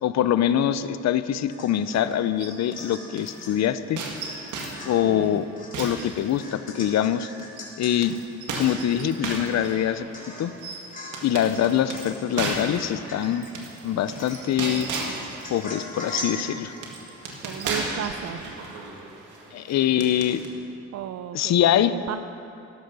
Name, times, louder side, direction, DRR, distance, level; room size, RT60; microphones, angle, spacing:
voice 1, 0.0-4.0 4.8-5.5 5.8-7.3 7.8-8.2 8.6-10.1 10.4-10.5 11.2-13.5 13.8-14.9 15.5-16.7 19.5-20.4 21.3-21.9, left 10 dB, 60° left, 13 dB, 0.6 m, -24 dB
Domestic sounds home sounds / Chink clink / Drip, 1.5-2.1 2.4-3.6 4.2-4.4 4.7-8.0 8.3-8.4 8.7-9.2 9.6-9.7 10.1-10.6 10.9-11.3 11.5-12.2 12.8-13.5 14.0-14.6 14.9-18.2 18.5-18.6, left 1 dB, 30° left, 3.4 m, -40 dB
sound 1, 1.8-3.4 4.0-6.8 7.4-20.5, right 3 dB, 85° right, 1.9 m, -36 dB
voice 2, 5.0-5.4 17.4-18.5 20.9-22.2, right 10 dB, 60° right, 9 dB, 0.5 m, -34 dB
13.0 x 11.5 x 5.3 m, 2.6 s
cardioid pair, 90°, 30 cm